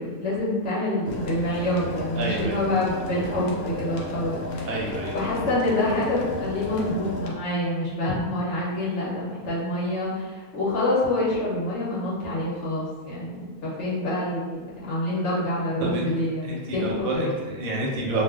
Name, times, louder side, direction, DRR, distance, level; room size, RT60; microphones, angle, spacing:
voice 1, 0.0-4.8 5.1-17.3, left 1 dB, 60° left, -7 dB, 0.9 m, -27 dB
sound 1, 1.1-7.3, left 1 dB, 80° left, 1.1 m, -34 dB
voice 2, 2.2-2.6 4.7-5.2 15.8-16.1 16.4-18.2, right 1 dB, 75° right, -2 dB, 1.0 m, -28 dB
2.4 x 2.2 x 3.5 m, 1.3 s
omnidirectional pair, 1.6 m